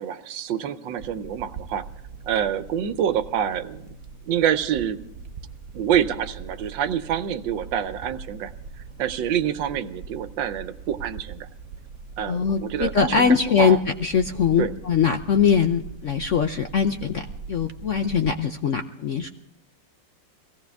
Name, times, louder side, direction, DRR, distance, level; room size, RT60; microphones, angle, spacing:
voice 1, 0.0-1.8 2.2-3.9 4.2-5.0 5.7-8.5 9.0-11.5 12.2-13.8 14.6-14.7, right 9 dB, 80° right, 12 dB, 1.5 m, -26 dB
sound 1, 1.0-18.3, right 5 dB, 55° right, 0.9 m, -41 dB
voice 2, 12.3-17.2 17.5-19.3, left 6 dB, 60° left, 6 dB, 0.8 m, -22 dB
22.5 x 17.0 x 3.5 m, 0.82 s
omnidirectional pair, 2.0 m